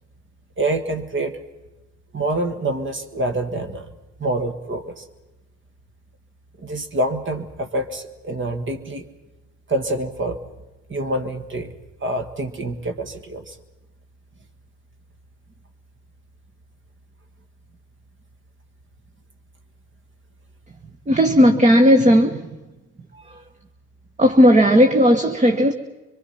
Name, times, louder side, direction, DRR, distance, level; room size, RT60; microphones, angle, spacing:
voice 1, 0.6-1.4 2.1-3.9 4.2-5.1 6.6-9.0 9.7-10.4 10.9-11.7 12.0-13.6 23.1-23.3, right 1 dB, 40° right, 7 dB, 1.7 m, -26 dB
voice 2, 21.1-22.5 23.3-23.4 24.2-25.7, equal, 25° right, 6 dB, 1.2 m, -15 dB
24.5 x 22.5 x 5.8 m, 1.1 s
cardioid pair, 90°, 30 cm